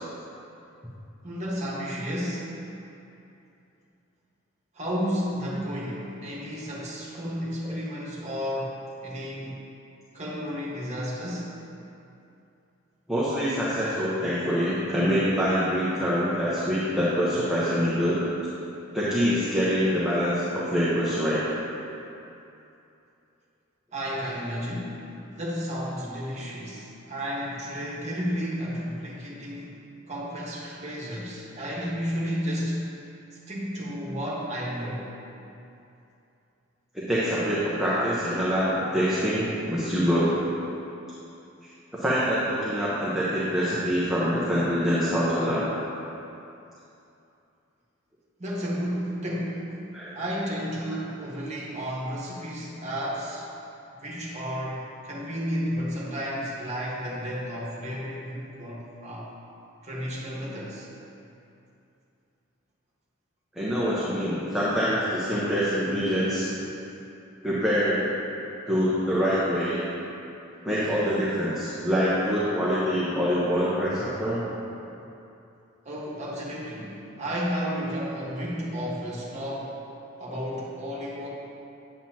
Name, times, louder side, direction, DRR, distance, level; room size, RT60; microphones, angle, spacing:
voice 1, 1.2-2.6 4.7-9.6 10.1-11.5 23.9-25.0 25.3-29.8 30.1-32.8 33.5-35.1 48.4-49.8 50.1-53.5 54.0-59.3 59.8-60.9 75.8-79.8 80.2-81.3, equal, 35° right, -5 dB, 1.5 m, -32 dB
voice 2, 13.1-18.2 18.9-21.4 36.9-40.3 41.9-45.6 49.9-50.2 63.5-66.5 67.4-68.1 68.7-69.8 70.6-74.4, equal, 5° right, -10 dB, 1.0 m, -25 dB
9.4 x 7.5 x 2.9 m, 2.7 s
head